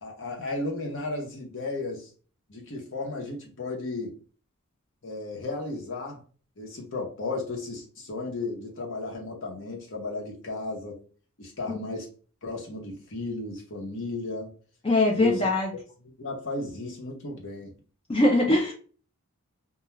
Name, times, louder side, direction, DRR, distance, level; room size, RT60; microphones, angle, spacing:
voice 1, 0.0-2.1 2.5-4.2 5.0-6.2 6.6-11.0 11.4-12.1 12.4-14.5 15.1-15.5 16.2-17.7, left 2 dB, 60° left, 0.9 m, -34 dB
voice 2, 14.8-15.7 18.1-18.7, left 2 dB, 25° left, 0.4 m, -22 dB
2.3 x 2.3 x 3.0 m
head